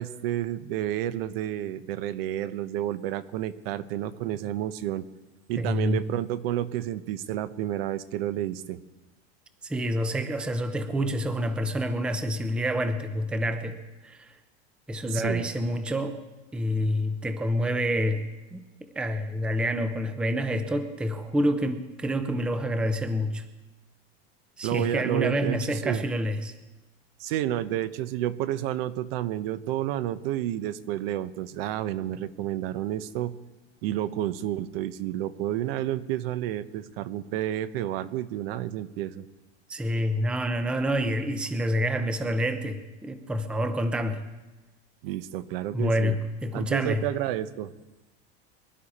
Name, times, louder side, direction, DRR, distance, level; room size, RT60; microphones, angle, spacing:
voice 1, 0.0-5.1 5.5-8.8 15.1-15.4 24.6-26.0 27.2-33.4 33.8-39.3 45.0-46.2 46.5-47.7, right 12 dB, 65° right, 14 dB, 0.9 m, -30 dB
voice 2, 5.6-6.0 9.6-13.8 14.0-14.3 14.9-16.2 16.5-23.4 24.6-26.5 39.7-44.2 45.7-47.1, equal, 5° right, 9 dB, 0.5 m, -28 dB
24.0 x 12.0 x 4.2 m, 1.1 s
supercardioid pair, 170°, 31 cm